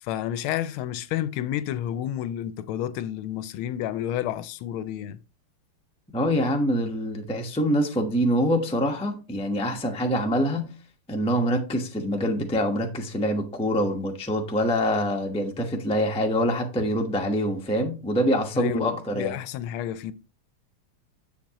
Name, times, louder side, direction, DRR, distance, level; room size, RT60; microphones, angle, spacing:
voice 1, 0.0-5.2 18.6-20.1, left 11 dB, 80° left, 1.4 m, -30 dB
voice 2, 6.1-10.7 11.1-19.4, equal, 5° left, 0.4 m, -25 dB
7.6 x 7.3 x 2.9 m
omnidirectional pair, 2.4 m